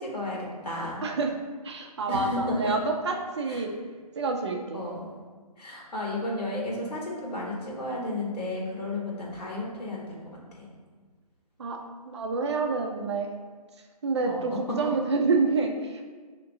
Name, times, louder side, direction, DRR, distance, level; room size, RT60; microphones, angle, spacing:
voice 1, 0.0-1.0 2.1-2.8 3.5-3.6 4.7-5.1 5.6-10.7 14.2-14.9, left 1 dB, 85° left, -3 dB, 1.5 m, -33 dB
voice 2, 1.0-1.3 1.6-3.7 4.2-4.8 11.6-13.4 14.0-16.0, right 3 dB, 45° right, 3 dB, 0.5 m, -28 dB
5.8 x 2.9 x 2.6 m, 1.5 s
hypercardioid pair, 155°, 20 cm